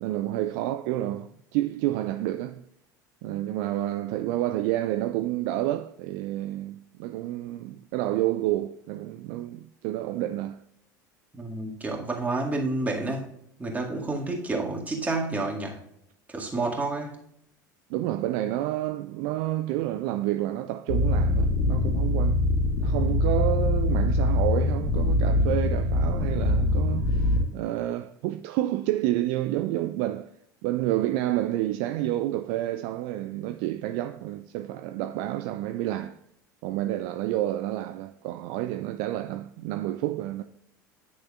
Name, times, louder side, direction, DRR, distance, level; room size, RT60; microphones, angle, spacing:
voice 1, 0.0-2.6 3.2-10.6 17.9-22.4 22.8-30.3 30.6-36.2 36.6-40.4, right 14 dB, 50° right, 0.4 m, -29 dB
voice 2, 11.3-13.3 13.6-15.8 16.3-17.2, right 2 dB, 15° right, 1.9 m, -29 dB
sound 1, 20.9-27.5, left 2 dB, 50° left, 1.0 m, -23 dB
10.0 x 6.2 x 2.4 m
figure-of-eight pair, 70°, 10 cm